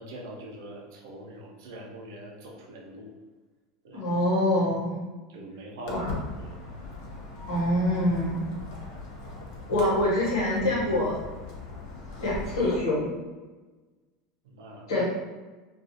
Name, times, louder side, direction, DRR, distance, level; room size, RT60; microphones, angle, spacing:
voice 1, 0.0-3.1 3.8-4.0 5.3-6.0 6.4-6.5 14.4-15.0, right 1 dB, 80° right, 0 dB, 0.6 m, -43 dB
voice 2, 3.9-5.0 5.9-6.1 7.5-8.4 9.7-11.2 12.2-13.1 14.9-15.0, left 1 dB, 90° left, -6 dB, 1.2 m, -25 dB
Walk footsteps, 5.9-12.8, left 3 dB, 65° left, 0.7 m, -39 dB
2.4 x 2.3 x 2.7 m, 1.3 s
supercardioid pair, 110°, 2 cm